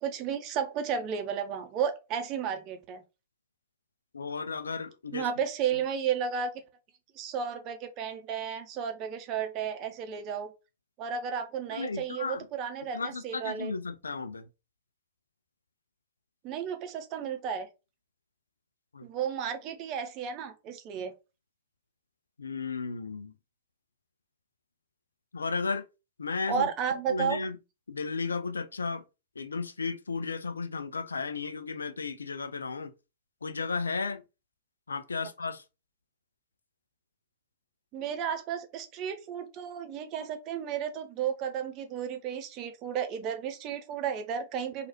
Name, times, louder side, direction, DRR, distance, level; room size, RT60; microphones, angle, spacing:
voice 1, 0.0-3.0 5.1-6.6 7.2-10.5 11.0-13.7 16.4-17.7 19.0-21.1 26.5-27.4 37.9-44.9, right 7 dB, 35° right, 0.6 m, -33 dB
voice 2, 4.1-5.3 11.7-12.4 12.9-14.4 18.9-19.0 22.4-23.3 25.3-25.8 26.2-26.6 27.1-27.5 27.9-29.0 29.4-32.9 33.4-34.2 34.9-35.6, left 4 dB, 75° left, 0.3 m, -34 dB
3.1 x 2.4 x 2.8 m
figure-of-eight pair, 100°, 0 cm